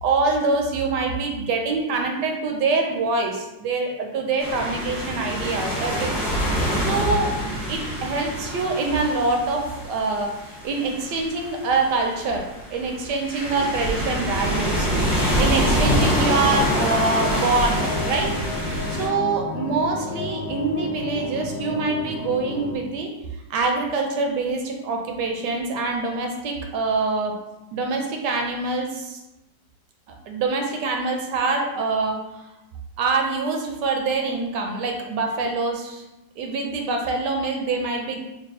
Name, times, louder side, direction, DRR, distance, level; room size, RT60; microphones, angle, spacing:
voice 1, 0.0-6.3 6.8-14.9 15.4-18.3 18.9-23.1 23.5-27.3 27.7-29.2 30.3-32.2 33.0-36.0 36.4-38.2, right 3 dB, 75° right, 2 dB, 1.1 m, -25 dB
sound 1, 4.4-19.1, equal, 20° left, 0.8 m, -26 dB
sound 2, 15.4-22.8, left 4 dB, 80° left, 0.7 m, -33 dB
3.5 x 2.2 x 3.9 m, 0.97 s
omnidirectional pair, 2.0 m